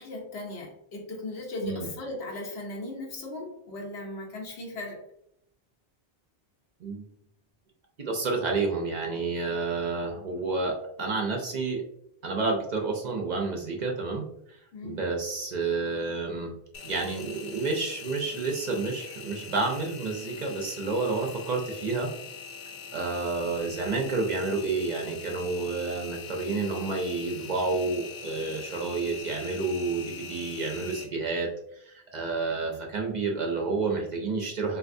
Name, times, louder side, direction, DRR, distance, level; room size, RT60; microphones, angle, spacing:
voice 1, 0.0-5.0 14.7-15.1, left 2 dB, 90° left, -1 dB, 1.1 m, -37 dB
voice 2, 8.0-11.8 12.2-14.2 14.8-16.5 16.8-22.1 22.9-34.8, right 3 dB, 55° right, 1 dB, 0.6 m, -30 dB
Engine, 16.7-31.0, left 6 dB, 55° left, 0.7 m, -43 dB
3.3 x 2.6 x 2.5 m, 0.75 s
omnidirectional pair, 1.0 m